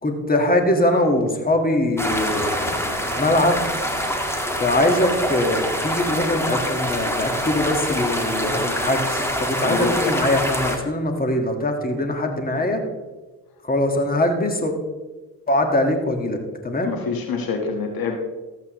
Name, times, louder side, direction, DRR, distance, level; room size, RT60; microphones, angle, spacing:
voice 1, 0.0-2.7 3.2-3.6 4.6-12.8 13.6-14.7 15.5-16.4 16.6-16.9, left 1 dB, 20° left, 4 dB, 1.7 m, -22 dB
sound 1, 2.0-10.8, equal, 5° left, 1.7 m, -25 dB
voice 2, 9.6-10.0 16.8-18.2, left 4 dB, 60° left, 4 dB, 1.5 m, -26 dB
13.5 x 8.3 x 3.1 m, 1.2 s
supercardioid pair, 60°, 41 cm